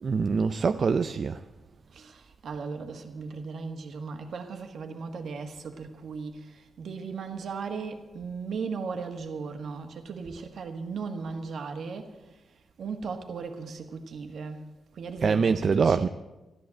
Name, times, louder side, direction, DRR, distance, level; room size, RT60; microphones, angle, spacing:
voice 1, 0.0-1.4 15.2-16.1, right 5 dB, 45° right, 0.4 m, -24 dB
voice 2, 1.9-16.1, right 5 dB, 70° right, 1.6 m, -37 dB
14.0 x 11.0 x 7.6 m
wide cardioid pair, 135°, 0 cm